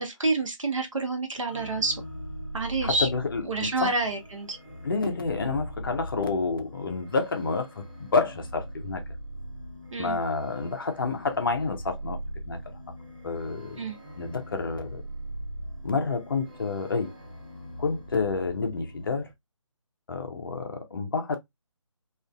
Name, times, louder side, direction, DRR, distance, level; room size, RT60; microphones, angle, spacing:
voice 1, 0.0-2.0 2.5-3.1 3.4-4.6 9.9-10.2 13.8-14.0, right 3 dB, 70° right, 0.9 m, -28 dB
sound 1, 1.5-19.3, equal, 10° right, 0.6 m, -41 dB
voice 2, 2.8-3.9 4.8-9.0 10.0-12.2 12.5-12.6 13.2-13.8 14.2-15.0 15.8-17.1 17.8-19.3 20.1-21.4, left 4 dB, 40° left, 0.5 m, -29 dB
2.4 x 2.4 x 2.2 m
figure-of-eight pair, 150°, 17 cm